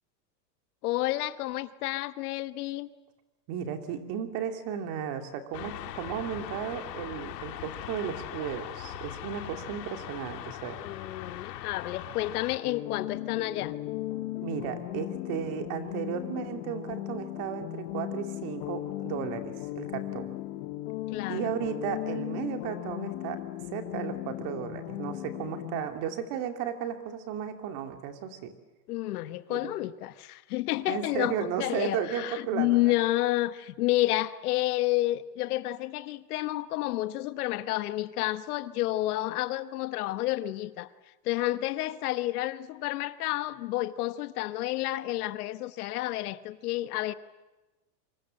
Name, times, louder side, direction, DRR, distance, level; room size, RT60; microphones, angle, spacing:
voice 1, 0.8-2.9 10.8-13.8 21.1-21.5 28.9-40.9 41.2-47.1, left 16 dB, 65° left, 1.3 m, -30 dB
voice 2, 3.5-10.8 14.4-20.3 21.3-23.4 23.7-28.5 29.5-29.8 30.9-32.9, right 8 dB, 40° right, 2.8 m, -34 dB
sound 1, 5.5-12.6, left 12 dB, 80° left, 2.3 m, -40 dB
sound 2, 12.6-25.9, left 16 dB, 45° left, 1.3 m, -37 dB
27.0 x 25.0 x 7.7 m
supercardioid pair, 160°, 48 cm